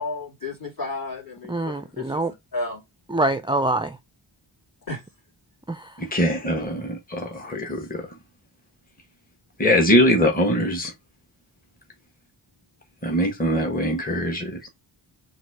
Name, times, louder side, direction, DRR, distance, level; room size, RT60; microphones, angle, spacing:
voice 1, 0.0-2.2 2.5-2.8 4.9-5.0, left 3 dB, 45° left, 2.6 m, -32 dB
voice 2, 1.5-2.3 3.1-4.0 5.7-6.0, right 2 dB, 10° right, 0.4 m, -25 dB
voice 3, 6.0-8.0 9.6-10.9 13.0-14.7, equal, 15° left, 1.2 m, -22 dB
4.0 x 2.6 x 4.5 m
wide cardioid pair, 50°, 50 cm